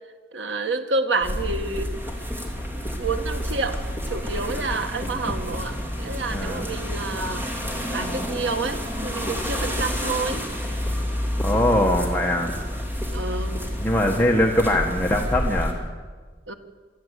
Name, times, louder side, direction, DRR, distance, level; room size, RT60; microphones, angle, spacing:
voice 1, 0.3-1.9 3.0-3.8 4.1-7.6 7.9-10.4 13.1-13.6 16.5-16.6, right 3 dB, 80° right, 7 dB, 1.6 m, -29 dB
sound 1, 1.2-15.7, equal, 10° right, 2.8 m, -29 dB
voice 2, 6.3-6.7 11.4-12.5 13.8-15.7, left 1 dB, 10° left, 0 dB, 1.4 m, -22 dB
25.0 x 13.5 x 8.3 m, 1.4 s
head